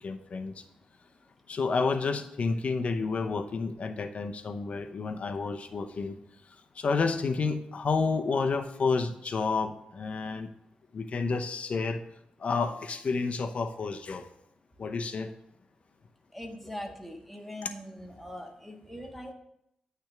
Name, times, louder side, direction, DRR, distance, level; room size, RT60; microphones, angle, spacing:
voice 1, 0.0-0.6 1.5-6.2 6.5-10.5 10.9-12.0 12.4-14.3 14.8-15.3 17.6-17.7, left 4 dB, 55° left, 8 dB, 0.8 m, -30 dB
voice 2, 16.3-19.3, equal, 5° left, 2 dB, 1.5 m, -41 dB
8.9 x 3.5 x 5.9 m, 0.79 s
cardioid pair, 55°, 3 cm